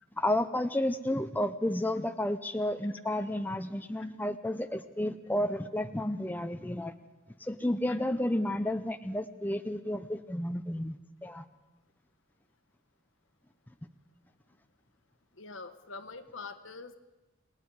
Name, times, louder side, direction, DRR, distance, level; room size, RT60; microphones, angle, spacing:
voice 1, 0.2-6.9 7.4-11.4, left 1 dB, 10° left, 8 dB, 0.7 m, -31 dB
voice 2, 15.4-17.0, left 4 dB, 75° left, 8 dB, 1.4 m, -44 dB
28.5 x 20.0 x 4.9 m, 1.1 s
head